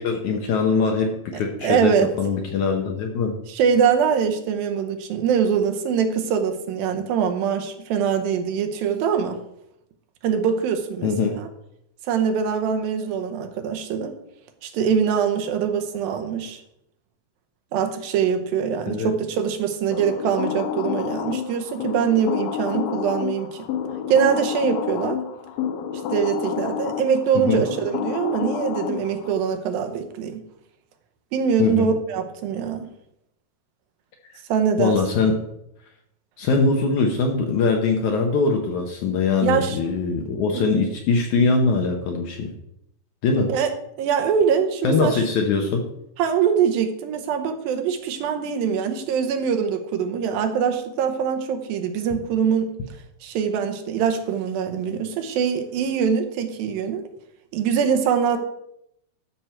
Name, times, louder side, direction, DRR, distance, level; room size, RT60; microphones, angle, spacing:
voice 1, 0.0-1.9 2.2-3.4 11.0-11.4 18.9-19.1 27.4-27.7 31.6-31.9 34.8-35.4 36.4-42.5 43.2-43.5 44.8-45.8, left 4 dB, 70° left, 3 dB, 1.9 m, -22 dB
voice 2, 1.3-2.1 3.5-9.4 10.2-11.5 12.1-14.2 14.6-16.6 17.7-23.6 24.1-25.2 26.1-30.4 31.3-32.9 34.5-35.0 39.4-39.8 40.5-40.8 43.5-43.7 44.0-45.2 46.2-52.7 53.2-57.0 57.5-58.4, right 7 dB, 80° right, 6 dB, 2.6 m, -23 dB
sound 1, 19.9-29.4, left 9 dB, 90° left, 2.7 m, -29 dB
12.5 x 6.2 x 4.5 m, 0.80 s
omnidirectional pair, 4.2 m